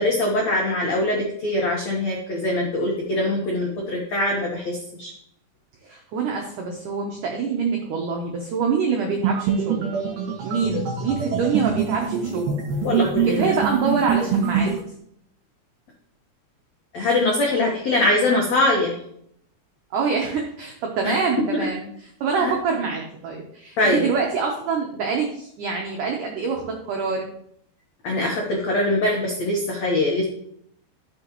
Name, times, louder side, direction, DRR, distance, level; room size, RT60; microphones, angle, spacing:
voice 1, 0.0-5.1 11.3-11.4 12.8-13.5 16.9-18.9 21.0-21.1 21.5-21.6 22.4-22.5 23.8-24.1 28.0-30.2, left 2 dB, 85° left, -1 dB, 1.5 m, -22 dB
voice 2, 5.8-9.9 10.4-12.6 13.2-14.7 19.9-21.9 22.2-27.3, right 5 dB, 85° right, 1 dB, 1.8 m, -25 dB
sound 1, 9.2-14.8, right 7 dB, 60° right, 3.0 m, -24 dB
12.5 x 6.3 x 3.0 m, 0.70 s
omnidirectional pair, 5.0 m